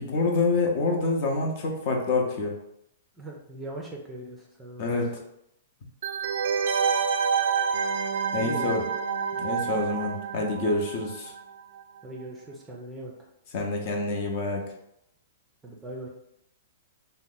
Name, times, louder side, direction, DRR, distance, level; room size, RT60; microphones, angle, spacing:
voice 1, 0.0-2.6 4.8-5.2 8.3-8.9 9.4-11.3 13.5-14.6, left 3 dB, 45° left, 1 dB, 0.7 m, -27 dB
voice 2, 3.2-5.0 8.4-8.7 12.0-13.1 15.6-16.1, right 1 dB, 10° right, -1 dB, 0.5 m, -39 dB
sound 1, 6.0-11.5 11.7-11.8, right 6 dB, 70° right, 0.3 m, -28 dB
2.8 x 2.1 x 3.8 m, 0.78 s
hypercardioid pair, 150°, 0 cm